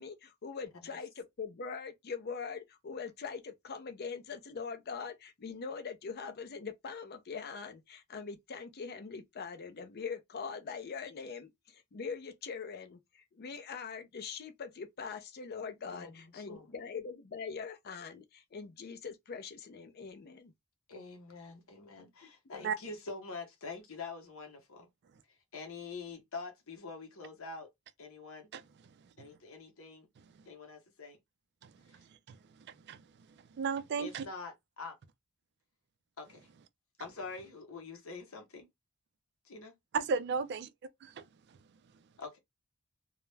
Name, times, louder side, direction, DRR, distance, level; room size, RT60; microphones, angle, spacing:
voice 1, 0.0-20.5, left 5 dB, 45° left, 0.5 m, -42 dB
voice 2, 15.9-16.7 20.9-24.9 25.5-27.7 28.0-28.5 29.2-30.1 30.5-31.2 31.9-32.0 34.0-35.0 36.2-36.5 37.0-38.7 39.4-39.7 42.2-42.4, left 4 dB, 65° left, 0.8 m, -45 dB
voice 3, 33.6-34.2 39.9-40.7, right 5 dB, 50° right, 0.3 m, -33 dB
2.3 x 2.0 x 3.1 m
head